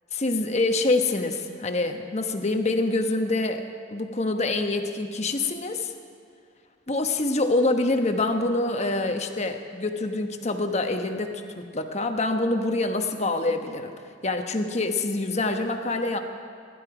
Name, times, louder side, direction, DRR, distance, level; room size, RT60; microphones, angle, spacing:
voice 1, 0.1-3.6 3.9-5.9 6.9-13.9 14.2-16.2, left 2 dB, 35° left, 5 dB, 1.1 m, -26 dB
24.0 x 11.5 x 5.0 m, 2.3 s
head